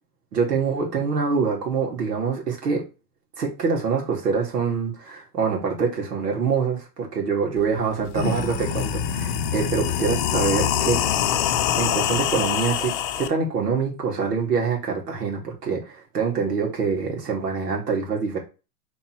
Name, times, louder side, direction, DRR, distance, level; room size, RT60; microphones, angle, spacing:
voice 1, 0.3-2.9 3.4-11.0 11.8-18.4, right 5 dB, 85° right, 0 dB, 3.0 m, -25 dB
sound 1, 7.6-7.7 8.0-13.3, left 9 dB, 35° left, 0.7 m, -24 dB
5.5 x 4.1 x 4.8 m, 0.30 s
hypercardioid pair, 140°, 47 cm